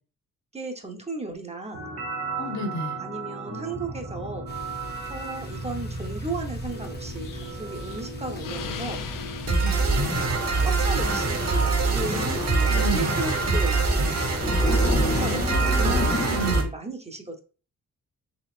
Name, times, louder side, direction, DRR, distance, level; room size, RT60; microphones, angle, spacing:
voice 1, 0.5-1.9 3.0-4.4 5.1-9.0 10.6-12.3 12.7-13.8 15.1-17.4, right 3 dB, 20° right, 0.7 m, -35 dB
sound 1, 1.7-16.6, right 3 dB, 50° right, 1.0 m, -26 dB
voice 2, 2.4-3.0 9.6-9.8 12.1-13.1 15.2-15.9 16.3-16.7, equal, 55° left, 1.0 m, -32 dB
sound 2, 4.5-16.6, left 2 dB, 30° left, 0.7 m, -34 dB
Explosion, 7.2-11.1, left 8 dB, 75° left, 0.5 m, -40 dB
4.3 x 3.5 x 2.3 m
wide cardioid pair, 120°, 33 cm